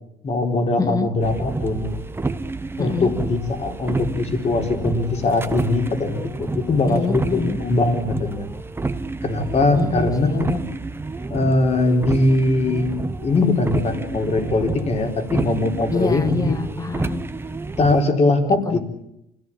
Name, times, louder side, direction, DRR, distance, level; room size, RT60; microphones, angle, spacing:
voice 1, 0.2-1.9 2.8-8.4 9.2-10.6 11.3-12.9 13.2-16.6 17.8-18.8, left 2 dB, 40° left, 4 dB, 4.0 m, -21 dB
voice 2, 0.8-1.1 2.8-3.1 6.9-7.6 9.7-10.4 15.9-17.2 18.7-18.8, left 4 dB, 20° left, 11 dB, 1.6 m, -26 dB
sound 1, 1.2-18.0, right 3 dB, 15° right, 1.1 m, -29 dB
27.0 x 17.0 x 8.8 m, 0.81 s
cardioid pair, 110°, 17 cm